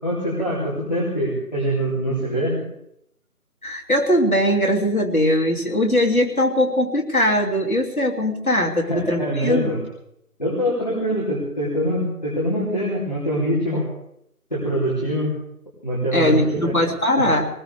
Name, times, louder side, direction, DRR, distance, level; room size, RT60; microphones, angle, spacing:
voice 1, 0.0-2.6 8.8-9.8 10.4-13.9 14.5-15.3 15.8-16.7 17.2-17.3, equal, 30° left, -8 dB, 3.4 m, -24 dB
voice 2, 3.6-9.7 16.1-17.5, left 1 dB, 65° left, 1 dB, 3.0 m, -20 dB
21.0 x 19.5 x 3.5 m, 0.75 s
figure-of-eight pair, 180°, 46 cm